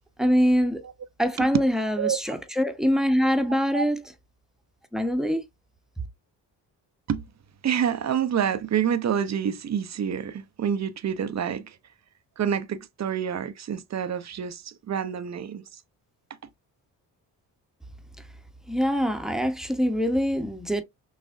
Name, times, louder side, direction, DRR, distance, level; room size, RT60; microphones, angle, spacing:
voice 1, 0.2-0.8 1.2-4.0 4.9-5.4 18.7-20.8, equal, ahead, 1.0 m, -24 dB
voice 2, 7.6-11.8 12.4-15.6, right 8 dB, 40° right, 0.7 m, -27 dB
6.2 x 2.4 x 2.5 m
hypercardioid pair, 50°, 44 cm